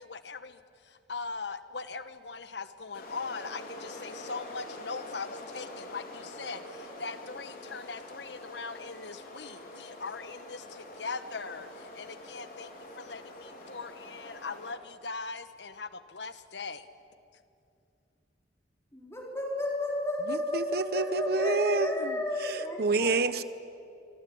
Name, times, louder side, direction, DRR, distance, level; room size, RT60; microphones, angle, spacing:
voice 1, 0.0-16.9, left 4 dB, 70° left, 12 dB, 1.3 m, -40 dB
sound 1, 2.9-14.7, left 1 dB, 50° left, 4.4 m, -45 dB
voice 2, 18.9-23.1, left 1 dB, 15° left, -1 dB, 4.6 m, -32 dB
voice 3, 20.3-22.2 22.4-23.4, right 3 dB, 55° right, 14 dB, 1.0 m, -28 dB
26.5 x 24.5 x 8.7 m, 2.6 s
head